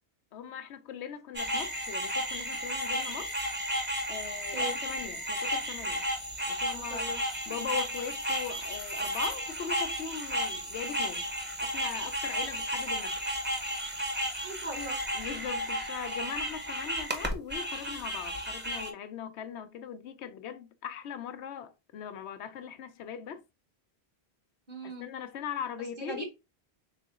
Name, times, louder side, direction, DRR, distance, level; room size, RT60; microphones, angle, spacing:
voice 1, 0.3-3.3 4.1-6.0 6.5-7.1 7.5-11.3 11.6-13.2 15.1-23.4 24.8-26.2, left 8 dB, 85° left, 0.9 m, -40 dB
sound 1, 1.3-18.9, equal, 10° right, 0.7 m, -33 dB
voice 2, 6.7-7.2 7.5-7.6 14.4-15.0 24.7-25.1 26.0-26.2, right 2 dB, 55° right, 1.5 m, -39 dB
4.1 x 3.7 x 2.4 m
omnidirectional pair, 1.1 m